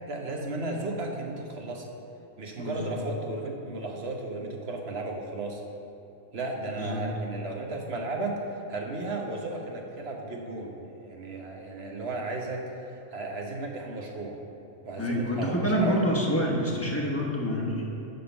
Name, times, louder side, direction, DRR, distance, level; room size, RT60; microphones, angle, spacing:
voice 1, 0.1-1.8 2.4-5.6 6.3-14.4 14.8-16.0, right 2 dB, 50° right, 1 dB, 1.2 m, -34 dB
voice 2, 2.6-3.0 6.8-7.2 15.0-17.8, equal, 10° left, -3 dB, 1.1 m, -27 dB
11.0 x 3.8 x 6.8 m, 3.0 s
omnidirectional pair, 1.4 m